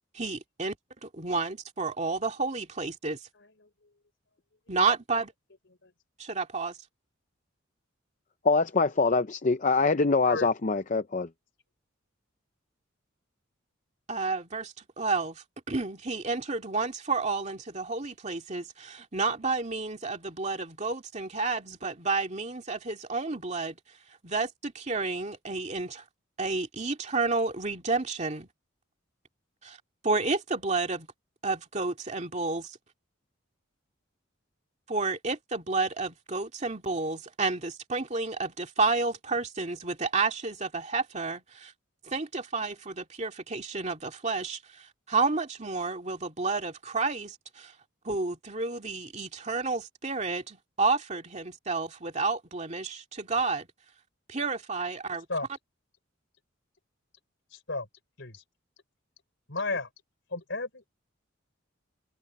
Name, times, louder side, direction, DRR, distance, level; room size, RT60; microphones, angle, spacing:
voice 1, 0.1-0.8 1.0-3.2 4.7-5.3 6.2-6.8 14.1-23.8 24.2-26.0 26.4-28.5 29.6-29.8 30.0-31.1 31.4-32.8 34.9-41.7 42.1-47.7 48.0-53.7 54.3-55.3, right 3 dB, 35° right, 2.4 m, -30 dB
voice 2, 8.4-11.3, left 4 dB, 40° left, 0.6 m, -24 dB
voice 3, 59.5-59.9 60.3-60.9, left 3 dB, 65° left, 3.9 m, -32 dB
head